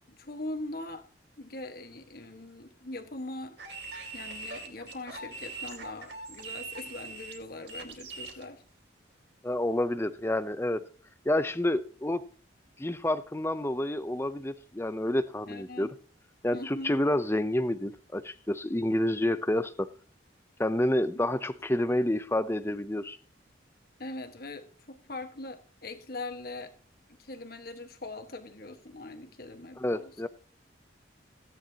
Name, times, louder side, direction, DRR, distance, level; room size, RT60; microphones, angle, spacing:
voice 1, 0.1-1.1 1.4-3.6 4.1-8.6 15.5-15.9 16.5-16.9 21.1-21.3 24.0-26.7 27.2-30.1, left 2 dB, 50° left, 1.5 m, -41 dB
sound 1, 3.6-8.4, right 3 dB, 60° right, 2.9 m, -42 dB
voice 2, 9.4-10.9 11.3-12.2 12.8-15.9 16.4-19.9 20.6-23.2 29.8-30.3, left 1 dB, 15° left, 0.6 m, -29 dB
16.5 x 10.0 x 2.9 m
head